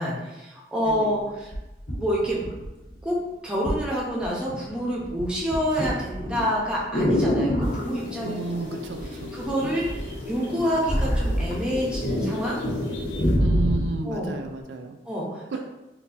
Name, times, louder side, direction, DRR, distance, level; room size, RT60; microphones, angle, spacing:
voice 1, 0.0-1.5 2.0-2.4 3.0-3.2 3.4-8.4 8.6-8.8 9.3-12.6 14.0-14.4 15.1-15.6, equal, 5° right, -5 dB, 0.7 m, -27 dB
sound 1, 0.9-1.0 1.5-3.0 3.6-3.9 4.2-4.7 5.0-7.9 9.0-9.5 9.8-12.1 12.4-12.5 12.8-14.0 14.6-14.7, equal, 65° left, 1.3 m, -25 dB
sound 2, 7.6-13.4, left 2 dB, 80° left, 0.7 m, -34 dB
voice 2, 8.2-9.3 9.6-9.7 13.4-15.0 15.5-15.6, right 3 dB, 80° right, 5 dB, 0.4 m, -32 dB
3.9 x 2.6 x 2.6 m, 1.0 s
head